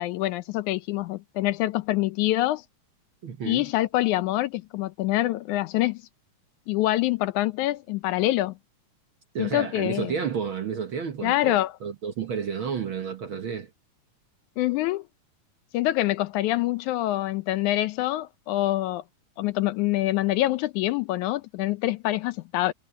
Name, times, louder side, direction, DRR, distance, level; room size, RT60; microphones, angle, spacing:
voice 1, 0.0-2.6 3.5-6.0 6.7-8.5 9.4-10.1 11.2-11.8 14.6-15.0 15.7-19.0 19.4-22.7, left 16 dB, 80° left, 2.1 m, -25 dB
voice 2, 3.2-3.7 9.3-13.7, right 7 dB, 55° right, 1.6 m, -31 dB
omnidirectional pair, 3.5 m